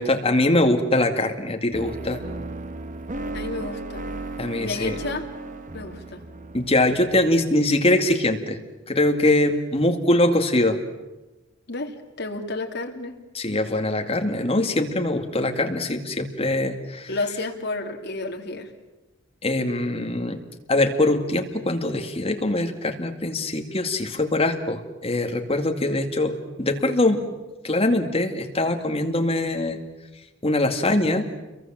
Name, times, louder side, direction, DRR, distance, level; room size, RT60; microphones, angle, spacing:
voice 1, 0.0-2.2 4.4-5.0 6.5-8.6 8.9-10.8 13.3-17.1 19.4-20.4 20.7-27.4 27.6-29.8 30.4-31.3, left 1 dB, 30° left, 5 dB, 2.3 m, -22 dB
sound 1, 1.7-7.8, right 2 dB, 40° right, 1.3 m, -35 dB
voice 2, 3.3-4.1 4.6-5.2 5.7-6.2 11.7-13.2 17.1-18.7, left 2 dB, 60° left, 3 dB, 2.9 m, -31 dB
29.5 x 23.0 x 7.6 m, 1.1 s
head